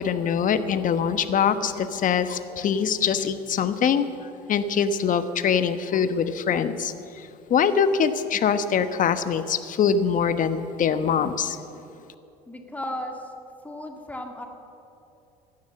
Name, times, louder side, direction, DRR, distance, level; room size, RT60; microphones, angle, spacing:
voice 1, 0.0-4.1 4.5-11.6, left 7 dB, 40° left, 11 dB, 1.2 m, -23 dB
voice 2, 12.5-13.3 13.6-14.5, left 1 dB, 5° left, 3 dB, 1.9 m, -35 dB
16.0 x 12.0 x 7.6 m, 2.6 s
hypercardioid pair, 70°, 20 cm